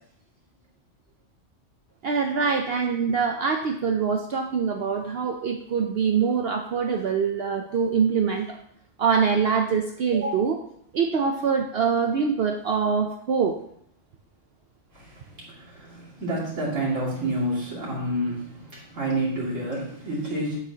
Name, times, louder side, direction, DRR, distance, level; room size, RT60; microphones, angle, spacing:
voice 1, 2.0-8.6 9.0-10.6 10.9-13.6, right 6 dB, 60° right, 4 dB, 0.8 m, -24 dB
voice 2, 14.9-20.6, right 1 dB, 80° right, -7 dB, 2.8 m, -29 dB
8.6 x 8.1 x 2.8 m, 0.68 s
omnidirectional pair, 1.3 m